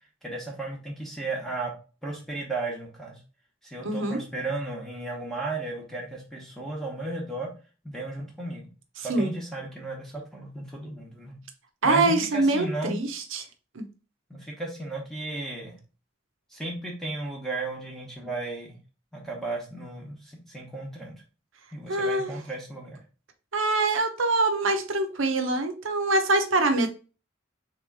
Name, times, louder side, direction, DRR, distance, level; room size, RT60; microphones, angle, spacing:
voice 1, 0.2-1.7 2.0-3.2 3.6-7.5 7.8-8.7 9.0-11.4 11.8-12.9 14.3-15.8 16.5-18.8 19.1-21.2 21.7-23.0, right 2 dB, ahead, -2 dB, 1.0 m, -34 dB
voice 2, 3.8-4.2 9.0-9.3 11.8-13.5 13.7-13.8 21.9-22.3 23.5-26.9, right 2 dB, 85° right, 6 dB, 0.9 m, -24 dB
3.7 x 3.2 x 4.5 m, 0.34 s
head